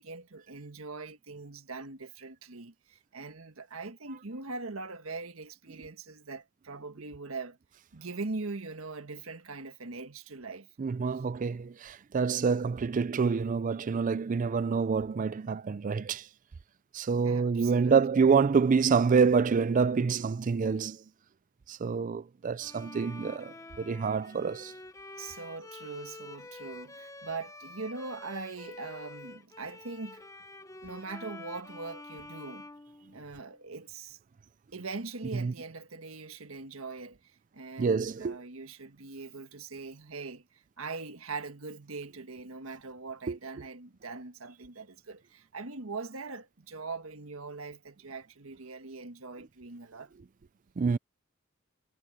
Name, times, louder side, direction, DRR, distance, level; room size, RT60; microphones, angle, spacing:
voice 1, 0.0-7.6 7.9-10.7 17.2-18.3 25.2-30.2 30.8-32.7 33.1-34.2 34.7-50.1, right 3 dB, 80° right, 1.5 m, -41 dB
voice 2, 10.8-16.2 16.9-21.0 21.7-24.7 35.4-35.5 37.8-38.4 43.3-43.4 50.8-51.0, right 5 dB, 40° right, 0.4 m, -27 dB
Bowed string instrument, 22.6-33.6, left 2 dB, 15° left, 0.8 m, -48 dB
head